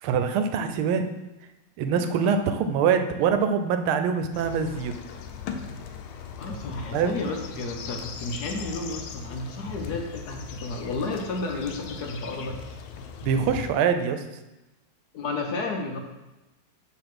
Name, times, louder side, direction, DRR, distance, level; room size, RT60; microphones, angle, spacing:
voice 1, 0.0-1.1 1.8-5.0 6.9-7.1 13.2-14.2, right 6 dB, 85° right, 8 dB, 1.5 m, -24 dB
voice 2, 1.9-2.3 6.4-12.6 15.1-16.0, left 3 dB, 60° left, 2 dB, 1.2 m, -32 dB
sound 1, 4.3-13.7, left 6 dB, 85° left, 1.5 m, -39 dB
7.2 x 3.6 x 5.9 m, 1.0 s
omnidirectional pair, 2.3 m